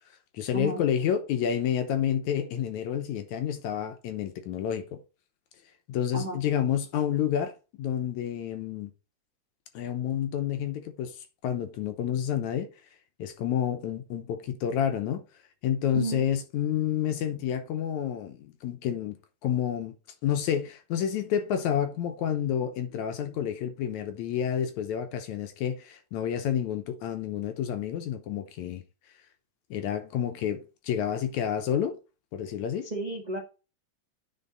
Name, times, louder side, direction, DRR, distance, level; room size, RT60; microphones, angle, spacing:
voice 1, 0.3-5.0 5.9-8.9 9.7-11.2 11.4-12.7 13.2-15.2 15.6-19.2 19.4-19.9 20.2-28.8 29.7-32.0 32.3-32.9, left 9 dB, 70° left, 2.1 m, -29 dB
voice 2, 32.8-33.4, right 2 dB, 30° right, 0.7 m, -32 dB
9.7 x 4.5 x 3.9 m
omnidirectional pair, 3.7 m